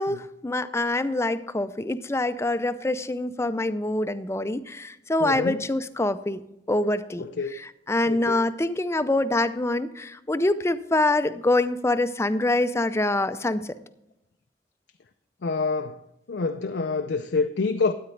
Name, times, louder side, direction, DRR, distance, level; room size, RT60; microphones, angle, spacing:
voice 1, 0.0-6.4 6.7-7.2 7.5-13.7, left 2 dB, 15° left, 0.5 m, -25 dB
voice 2, 5.2-5.6 7.2-7.5 8.1-8.4 15.4-16.0 16.3-17.9, left 4 dB, 80° left, 0.5 m, -27 dB
13.0 x 9.4 x 3.3 m
head